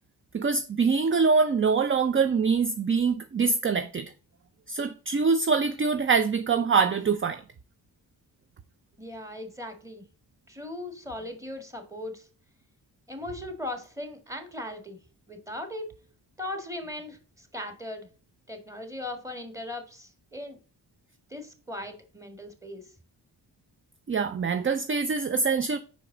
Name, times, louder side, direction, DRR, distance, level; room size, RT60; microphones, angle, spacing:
voice 1, 0.3-4.1 4.7-7.4 24.1-25.8, right 5 dB, 30° right, 0.5 m, -24 dB
voice 2, 9.0-10.0 10.5-12.3 13.1-15.0 15.3-15.8 16.4-18.1 18.5-20.6 21.3-22.8, left 1 dB, 5° right, 1.7 m, -38 dB
5.3 x 4.6 x 3.8 m
cardioid pair, 55°, 42 cm